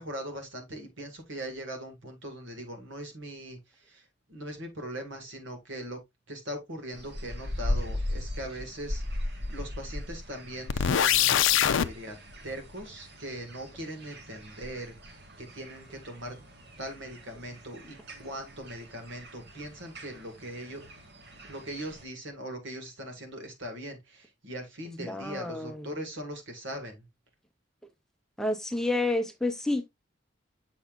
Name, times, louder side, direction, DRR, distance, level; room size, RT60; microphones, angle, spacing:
voice 1, 0.0-6.0 6.3-12.2 12.4-16.4 16.8-20.8 21.5-27.1, right 1 dB, 75° right, 1.9 m, -40 dB
sound 1, 6.9-22.0, left 1 dB, 60° right, 1.5 m, -39 dB
sound 2, 10.7-11.9, left 10 dB, 85° left, 0.5 m, -23 dB
voice 2, 25.0-25.9 28.4-29.9, left 2 dB, 5° left, 0.5 m, -30 dB
7.1 x 5.4 x 2.4 m
head